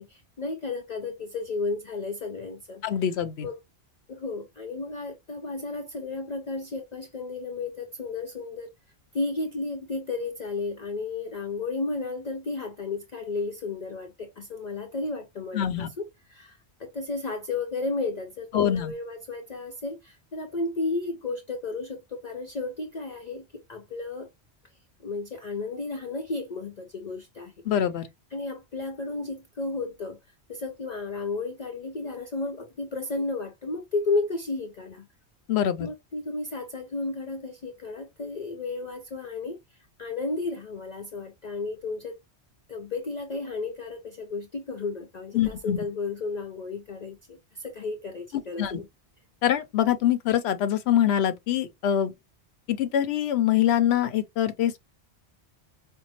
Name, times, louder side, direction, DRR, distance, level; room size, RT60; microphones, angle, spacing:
voice 1, 0.0-2.8 3.4-3.6 4.1-8.7 9.1-15.9 16.3-24.3 25.0-27.5 28.3-30.2 30.5-35.1 35.8-39.6 40.0-42.2 42.7-48.9, left 3 dB, 45° left, 0.7 m, -33 dB
voice 2, 2.8-3.5 15.5-15.9 18.5-18.9 27.6-28.1 35.5-35.9 45.3-45.8 48.3-48.8 49.4-52.1 52.7-54.8, left 10 dB, 75° left, 0.9 m, -24 dB
5.3 x 2.2 x 2.9 m
omnidirectional pair, 1.1 m